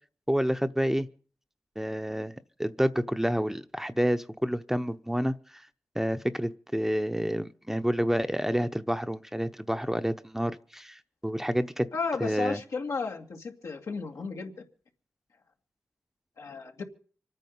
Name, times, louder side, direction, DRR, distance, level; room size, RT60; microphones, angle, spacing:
voice 1, 0.3-1.1 1.8-2.3 2.6-5.4 5.9-11.9 12.2-12.6, equal, 5° right, 10 dB, 0.8 m, -28 dB
voice 2, 11.9-14.5 16.4-16.8, left 4 dB, 85° left, 2 dB, 2.2 m, -33 dB
25.5 x 9.4 x 5.5 m, 0.43 s
cardioid pair, 50°, 5 cm